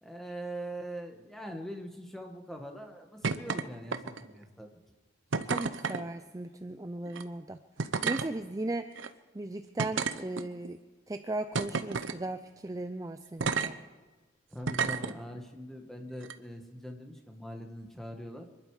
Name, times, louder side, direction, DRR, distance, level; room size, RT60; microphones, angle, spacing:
voice 1, 0.0-4.7 14.5-18.5, equal, ahead, 3 dB, 1.5 m, -42 dB
sound 1, 3.2-3.6 3.9-4.4 5.3-6.0 7.1-7.2 7.8-8.3 9.0-9.1 9.8-10.7 11.5-12.2 13.4-13.7 14.6-15.1 16.2-16.3, right 5 dB, 90° right, 0.8 m, -31 dB
voice 2, 5.5-7.6 8.0-8.9 9.3-10.8 11.1-13.8, right 2 dB, 20° right, 8 dB, 0.5 m, -37 dB
25.5 x 11.5 x 4.9 m, 1.3 s
head